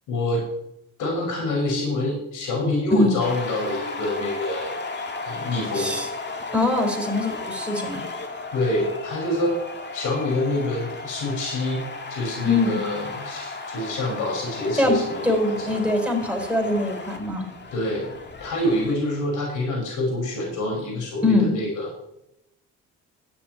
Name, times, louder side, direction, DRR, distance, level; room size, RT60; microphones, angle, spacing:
voice 1, 0.1-0.5 1.0-4.8 5.2-5.9 8.5-9.6 9.9-11.8 12.1-15.8 17.7-18.1 18.4-21.9, left 1 dB, 85° left, -2 dB, 5.4 m, -26 dB
sound 1, 3.2-18.9, left 3 dB, 35° left, 2.0 m, -35 dB
voice 2, 5.7-6.1 6.5-8.0 12.4-12.8 14.8-14.9 15.2-17.5 21.2-21.5, left 2 dB, 5° right, 3 dB, 4.1 m, -22 dB
13.0 x 6.3 x 9.2 m, 0.83 s
cardioid pair, 90°, 30 cm